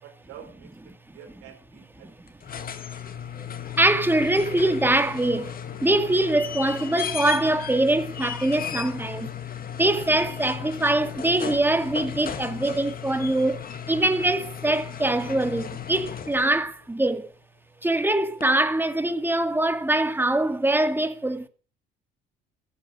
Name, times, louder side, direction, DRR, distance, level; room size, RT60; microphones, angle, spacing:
voice 1, 0.0-2.2, right 9 dB, 90° right, 4.4 m, -48 dB
sound 1, 2.3-16.7 18.4-18.5, left 8 dB, 45° left, 1.7 m, -35 dB
voice 2, 3.8-5.5 5.8-9.3 9.8-13.6 13.9-17.2 17.8-21.5, right 1 dB, 10° right, 2.1 m, -23 dB
14.0 x 8.6 x 8.4 m
cardioid pair, 85°, 21 cm